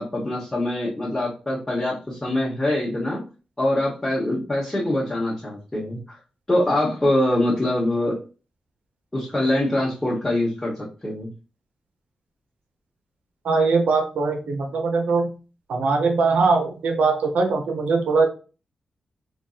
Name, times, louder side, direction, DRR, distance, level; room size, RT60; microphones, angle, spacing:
voice 1, 0.0-3.2 3.6-6.2 6.5-8.2 9.1-11.3, left 1 dB, 15° left, -6 dB, 0.9 m, -24 dB
voice 2, 13.4-15.3 15.7-18.3, right 4 dB, 80° right, 3 dB, 0.6 m, -21 dB
3.9 x 2.6 x 2.3 m, 0.33 s
wide cardioid pair, 155°, 2 cm